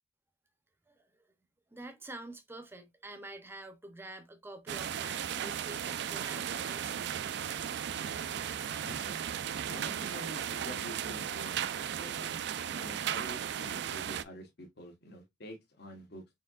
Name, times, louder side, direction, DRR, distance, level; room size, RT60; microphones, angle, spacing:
voice 1, 0.9-1.3 1.7-7.2, right 2 dB, 10° right, 0.6 m, -47 dB
sound 1, 4.7-14.2, right 9 dB, 65° right, 0.4 m, -36 dB
voice 2, 8.8-9.2 9.7-12.4 12.7-16.2, equal, 60° left, 1.1 m, -47 dB
4.4 x 3.5 x 2.3 m
head